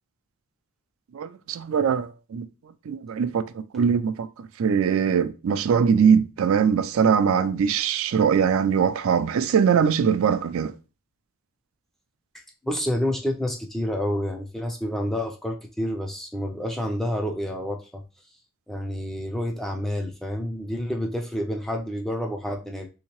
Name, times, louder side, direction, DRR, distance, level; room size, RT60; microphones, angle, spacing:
voice 1, 1.1-2.5 2.8-10.8, right 7 dB, 75° right, 0.3 m, -22 dB
voice 2, 12.6-18.0 18.7-22.9, equal, ahead, 0.4 m, -29 dB
3.5 x 2.8 x 2.9 m
head